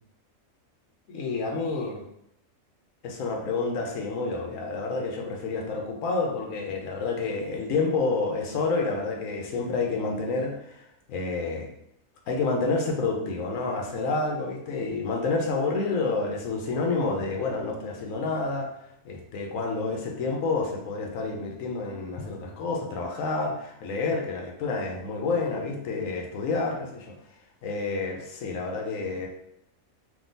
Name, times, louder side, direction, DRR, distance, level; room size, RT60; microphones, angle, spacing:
voice 1, 1.1-2.0 3.0-11.7 12.3-18.7 19.0-27.1 27.6-29.3, left 3 dB, 70° left, 0 dB, 1.2 m, -29 dB
sound 1, 22.2-22.8, left 2 dB, 50° left, 0.5 m, -45 dB
3.8 x 2.7 x 3.9 m, 0.79 s
omnidirectional pair, 1.5 m